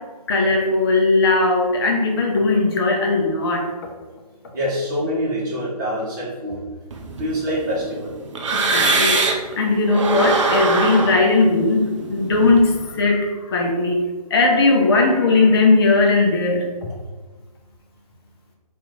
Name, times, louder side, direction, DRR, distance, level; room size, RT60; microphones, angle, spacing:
voice 1, 0.3-3.6 8.5-16.7, left 3 dB, 35° left, 1 dB, 0.6 m, -18 dB
voice 2, 4.5-6.6 7.2-8.1, equal, 30° right, -5 dB, 1.1 m, -25 dB
sound 1, 6.9-9.5 9.9-12.9, right 3 dB, 50° right, 0.5 m, -23 dB
2.9 x 2.5 x 3.7 m, 1.3 s
figure-of-eight pair, 145°, 21 cm